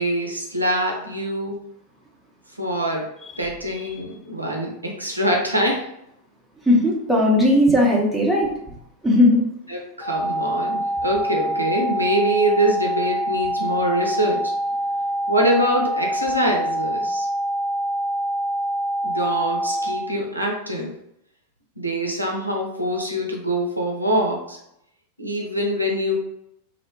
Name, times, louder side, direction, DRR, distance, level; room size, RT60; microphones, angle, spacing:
voice 1, 0.0-1.6 2.6-3.0 3.4-5.8 9.7-14.4 15.3-17.3 19.0-20.9 21.8-24.6 25.2-26.2, equal, 85° right, 0 dB, 0.5 m, -24 dB
voice 2, 6.7-8.5 9.0-9.4, left 1 dB, ahead, -4 dB, 0.7 m, -17 dB
sound 1, 10.0-20.0, right 1 dB, 30° right, 0.8 m, -25 dB
2.6 x 2.1 x 2.7 m, 0.77 s
figure-of-eight pair, 90°, 0 cm